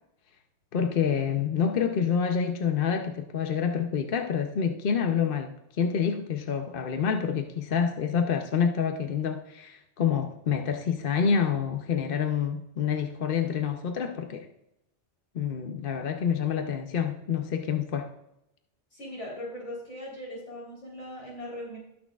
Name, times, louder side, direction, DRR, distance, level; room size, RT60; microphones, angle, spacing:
voice 1, 0.7-14.5 15.3-18.1, left 7 dB, 55° left, 0.9 m, -27 dB
voice 2, 18.9-21.8, left 1 dB, 80° left, 3.9 m, -39 dB
18.5 x 6.2 x 2.4 m
omnidirectional pair, 1.2 m